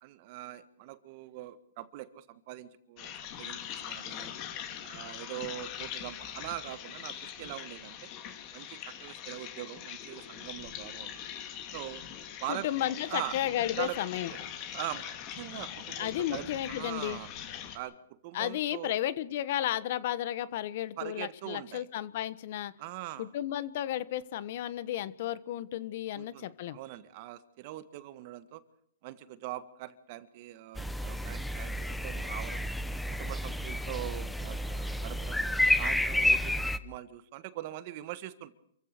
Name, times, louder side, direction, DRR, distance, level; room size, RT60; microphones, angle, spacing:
voice 1, 0.0-4.3 4.8-8.0 8.5-11.2 11.7-12.0 12.4-12.7 13.1-13.4 13.8-14.0 14.3-14.4 14.7-15.1 15.3-17.3 17.7-18.0 18.2-18.9 21.0-21.9 22.8-23.3 26.1-28.6 29.0-32.7 33.2-35.4 35.8-38.5, right 15 dB, 40° right, 13 dB, 1.7 m, -42 dB
sound 1, 3.0-17.8, left 9 dB, 30° left, 3.2 m, -42 dB
voice 2, 12.5-14.3 16.0-17.2 18.3-22.7 23.2-26.8, left 12 dB, 50° left, 17 dB, 1.3 m, -33 dB
sound 2, 30.7-36.8, left 1 dB, 5° left, 1.0 m, -30 dB
27.5 x 15.5 x 6.7 m, 0.69 s
hypercardioid pair, 150°, 0 cm